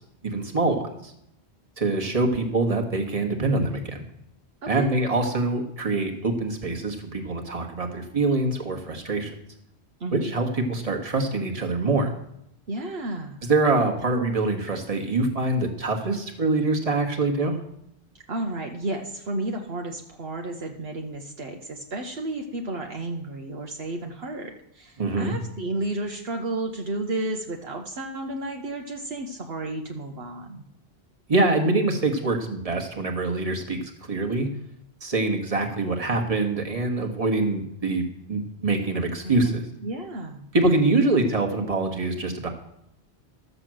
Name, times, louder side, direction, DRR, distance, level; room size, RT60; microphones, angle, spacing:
voice 1, 0.2-1.1 1.8-4.1 4.7-9.3 10.1-12.1 13.4-17.6 25.0-25.4 31.3-34.5 35.0-38.0 38.3-39.5 40.5-42.5, right 2 dB, 35° right, 3 dB, 1.6 m, -24 dB
voice 2, 10.0-10.3 12.7-13.4 18.3-30.6 39.2-40.5, right 2 dB, 65° right, 2 dB, 1.2 m, -32 dB
12.5 x 6.8 x 7.6 m, 0.76 s
omnidirectional pair, 1.1 m